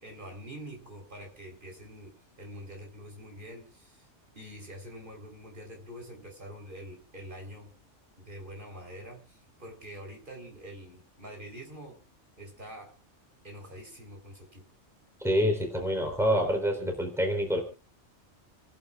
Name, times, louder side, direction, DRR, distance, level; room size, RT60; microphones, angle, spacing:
voice 1, 0.0-4.1 4.4-7.7 8.2-12.0 12.4-12.9 13.4-14.6, equal, 45° right, 1 dB, 4.2 m, -45 dB
voice 2, 15.2-17.6, equal, ahead, 3 dB, 3.7 m, -27 dB
29.5 x 11.0 x 2.4 m, 0.32 s
omnidirectional pair, 1.2 m